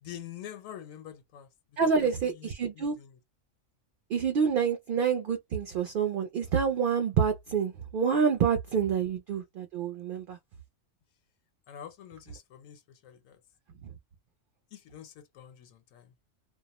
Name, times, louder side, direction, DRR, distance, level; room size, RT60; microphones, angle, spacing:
voice 1, 0.0-1.5 1.8-3.2 11.7-13.4 14.7-16.1, left 10 dB, 85° left, 1.0 m, -46 dB
voice 2, 1.8-3.0 4.1-10.4 13.8-13.9, right 6 dB, 65° right, 0.5 m, -27 dB
2.3 x 2.0 x 2.9 m
omnidirectional pair, 1.3 m